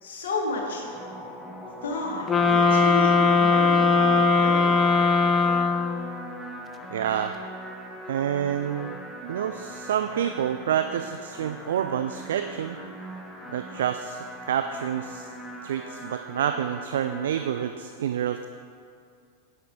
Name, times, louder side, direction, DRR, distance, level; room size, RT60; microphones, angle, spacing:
voice 1, 0.0-0.9 1.8-4.7, left 2 dB, 60° left, -1 dB, 1.6 m, -32 dB
sound 1, 0.8-17.7, equal, ahead, 1.1 m, -41 dB
sound 2, 2.3-6.2, left 4 dB, 20° left, 0.6 m, -20 dB
voice 2, 6.9-7.3 8.1-8.9 9.2-12.8 13.5-15.3 15.6-18.5, right 9 dB, 60° right, 8 dB, 0.3 m, -28 dB
9.1 x 8.6 x 3.8 m, 2.3 s
figure-of-eight pair, 90°, 0 cm